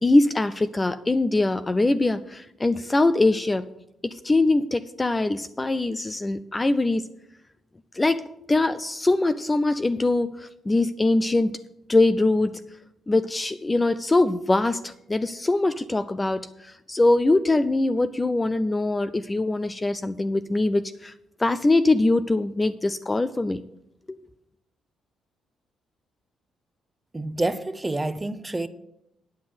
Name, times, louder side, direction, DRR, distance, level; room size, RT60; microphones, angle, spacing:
voice 1, 0.0-3.7 4.0-7.1 7.9-11.6 11.9-12.6 13.1-21.1 21.4-23.6 24.1-24.2, left 2 dB, 20° left, 0.4 m, -22 dB
voice 2, 27.1-28.7, right 2 dB, 15° right, 0.7 m, -28 dB
9.5 x 6.0 x 8.4 m
cardioid pair, 90°, 0 cm